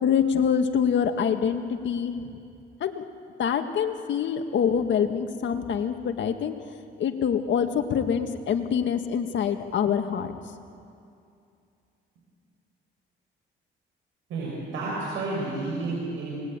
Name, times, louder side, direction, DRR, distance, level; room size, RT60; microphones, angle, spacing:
voice 1, 0.0-2.1 2.8-3.0 3.4-6.6 7.0-10.3, left 7 dB, 65° left, 6 dB, 1.9 m, -25 dB
voice 2, 14.3-16.3, right 3 dB, 90° right, -5 dB, 6.5 m, -31 dB
28.5 x 20.0 x 9.0 m, 2.5 s
cardioid pair, 90°, 20 cm